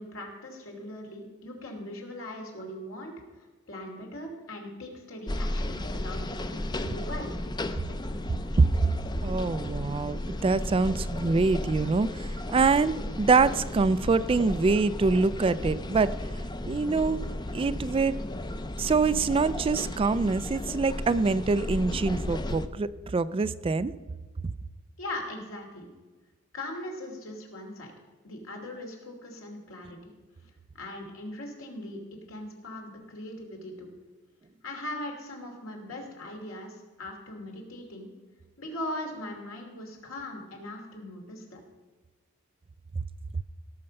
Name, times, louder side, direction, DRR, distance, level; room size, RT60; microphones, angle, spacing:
voice 1, 0.0-3.1 3.7-7.5 25.0-25.9 26.5-27.9 28.2-30.1 30.7-32.0 32.3-33.9 34.6-38.1 38.6-41.6, left 1 dB, 75° left, 1 dB, 2.8 m, -40 dB
sound 1, 5.3-22.7, left 1 dB, 20° left, 0.5 m, -34 dB
voice 2, 9.2-16.2 16.7-17.2 17.5-18.2 18.8-23.9, right 4 dB, 25° right, 15 dB, 0.3 m, -25 dB
17.0 x 6.7 x 5.3 m, 1.3 s
head